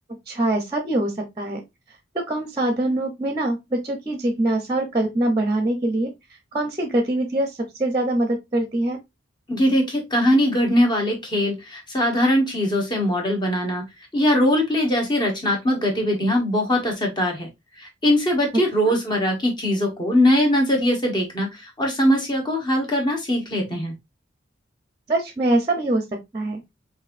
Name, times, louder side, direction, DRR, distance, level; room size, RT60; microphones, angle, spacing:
voice 1, 0.3-1.6 2.1-6.1 6.5-9.0 18.8-18.9 25.1-26.0 26.3-26.6, right 1 dB, 25° right, 0.7 m, -23 dB
voice 2, 9.5-13.9 14.1-17.5 17.8-23.9, left 1 dB, 25° left, 1.2 m, -21 dB
5.3 x 2.7 x 2.5 m
head